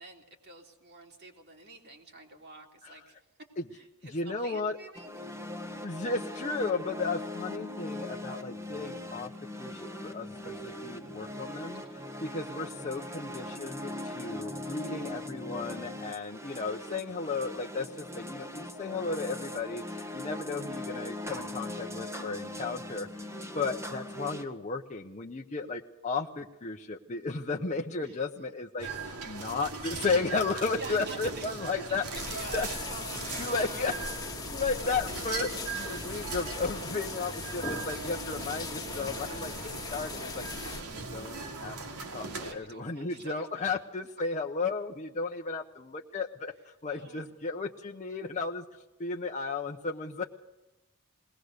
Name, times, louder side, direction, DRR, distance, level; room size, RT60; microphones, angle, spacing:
voice 1, 0.0-3.2 3.7-5.3 11.7-12.0 28.0-28.2 28.8-29.0 30.8-33.9 36.6-36.7 42.4-43.6 46.9-47.3, right 2 dB, 50° right, 1 dB, 3.3 m, -47 dB
voice 2, 4.1-4.7 5.8-9.3 9.6-23.3 23.5-28.9 29.2-32.0 32.5-32.7 33.4-33.9 34.5-41.8 42.1-48.6 49.0-50.2, left 4 dB, 35° left, 1 dB, 0.8 m, -34 dB
sound 1, 5.0-24.4, left 1 dB, 10° right, 1.5 m, -40 dB
sound 2, 28.8-42.5, right 4 dB, 80° right, 2.7 m, -39 dB
sound 3, 32.1-40.8, left 4 dB, 15° left, 1.9 m, -39 dB
20.5 x 19.0 x 6.6 m, 1.0 s
head